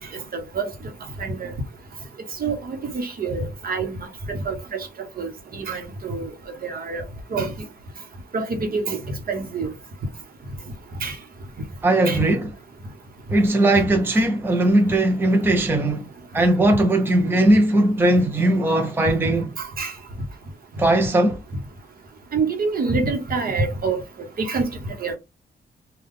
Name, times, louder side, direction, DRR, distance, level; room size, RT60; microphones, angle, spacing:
voice 1, 1.2-1.5 2.4-4.0 4.3-4.9 5.2-6.3 6.6-7.0 7.3-7.5 8.3-9.0 9.3-9.7 11.0-11.1 12.1-12.2 19.6-19.9 22.3-24.0 24.4-24.7 25.0-25.2, right 4 dB, 50° right, 0.9 m, -26 dB
voice 2, 11.8-12.5 13.3-16.1 16.3-19.5 20.8-21.4, right 1 dB, 10° right, 0.6 m, -19 dB
3.5 x 2.2 x 3.6 m
wide cardioid pair, 135°, 19 cm